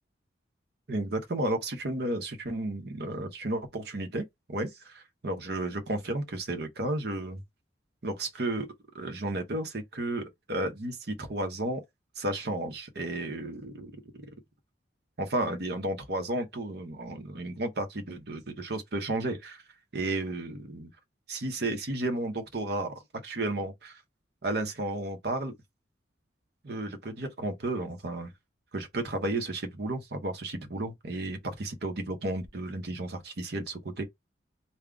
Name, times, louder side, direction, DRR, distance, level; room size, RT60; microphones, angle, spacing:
voice 1, 0.9-7.4 8.0-8.7 8.9-11.8 12.2-13.9 15.2-19.6 19.9-20.9 21.3-24.0 24.4-25.5 26.6-28.3 28.7-34.0, right 2 dB, 55° right, 0.8 m, -33 dB
3.7 x 2.2 x 3.4 m
head